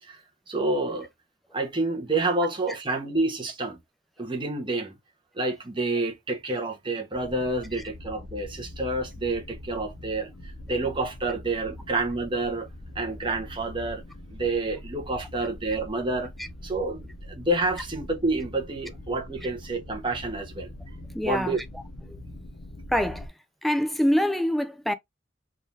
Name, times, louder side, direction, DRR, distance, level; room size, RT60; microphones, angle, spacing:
voice 1, 0.5-1.1 1.5-3.8 4.2-5.0 5.3-12.7 12.9-14.0 14.3-16.3 16.6-20.7 21.2-21.6, right 2 dB, 25° right, 1.1 m, -28 dB
sound 1, 7.1-23.3, left 1 dB, 55° left, 0.8 m, -43 dB
voice 2, 21.1-21.6 22.9-23.3 23.6-24.9, equal, ahead, 0.4 m, -25 dB
3.8 x 2.7 x 3.3 m
head